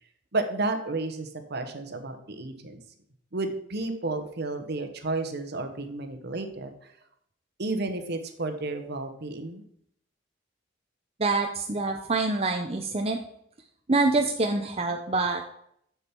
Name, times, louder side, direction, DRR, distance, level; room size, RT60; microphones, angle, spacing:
voice 1, 0.3-2.8 3.3-6.9 7.6-9.6, right 2 dB, 55° right, 7 dB, 1.1 m, -32 dB
voice 2, 11.2-13.2 13.9-15.4, right 3 dB, 30° right, 3 dB, 0.7 m, -26 dB
7.3 x 6.9 x 4.5 m, 0.70 s
head